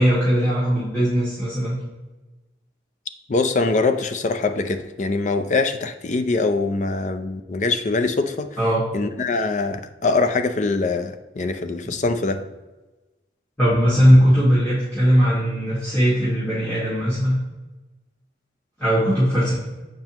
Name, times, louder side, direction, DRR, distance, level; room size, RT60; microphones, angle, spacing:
voice 1, 0.0-1.8 8.6-8.8 11.8-11.9 13.6-17.3 18.8-19.5, equal, 10° left, -12 dB, 2.2 m, -19 dB
voice 2, 3.3-8.6 8.9-12.4, left 3 dB, 40° left, 7 dB, 0.5 m, -23 dB
7.3 x 5.3 x 3.0 m, 1.1 s
head